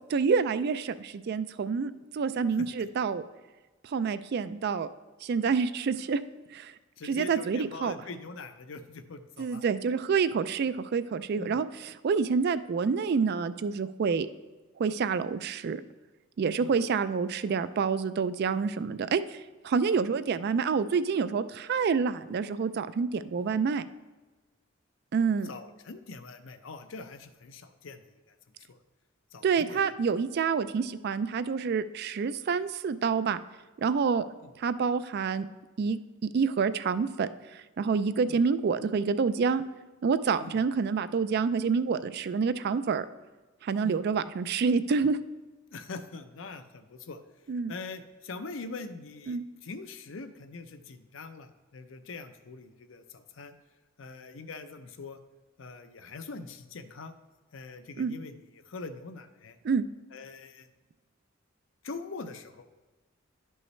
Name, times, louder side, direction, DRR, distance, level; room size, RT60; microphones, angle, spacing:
voice 1, 0.1-3.2 3.8-4.9 5.2-6.2 6.5-6.7 7.0-7.9 9.4-14.3 14.8-15.8 16.4-23.8 25.1-25.5 29.4-33.4 33.8-34.2 34.6-35.5 35.8-39.6 40.0-43.1 43.6-45.2 47.5-47.7 49.3-49.4 58.0-58.1 59.6-59.8, right 5 dB, 55° right, 13 dB, 0.3 m, -28 dB
voice 2, 7.0-9.6 11.4-11.6 16.6-16.7 23.4-23.5 25.4-28.8 29.3-30.1 34.4-34.5 38.3-38.4 40.4-40.6 43.8-44.0 45.7-47.2 47.7-53.5 54.0-55.2 55.6-57.1 57.5-58.4 58.7-59.6 60.1-60.7 61.8-62.7, left 3 dB, 75° left, 9 dB, 0.6 m, -43 dB
11.5 x 5.5 x 3.2 m, 1.2 s
head